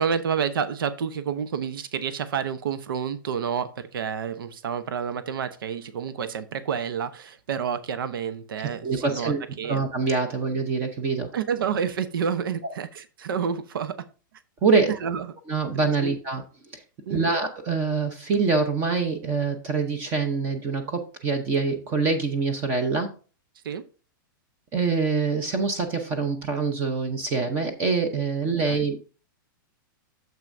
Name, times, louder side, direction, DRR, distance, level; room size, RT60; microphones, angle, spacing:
voice 1, 0.0-9.8 11.3-14.1 14.9-15.3 16.0-16.1 17.1-17.3 23.6-23.8 28.6-28.9, right 7 dB, 80° right, 12 dB, 0.9 m, -29 dB
voice 2, 8.8-11.3 14.6-14.9 15.5-16.4 16.7-16.8 17.1-23.1 24.7-29.0, right 4 dB, 20° right, 7 dB, 0.7 m, -25 dB
9.1 x 7.3 x 2.6 m, 0.35 s
supercardioid pair, 175°, 11 cm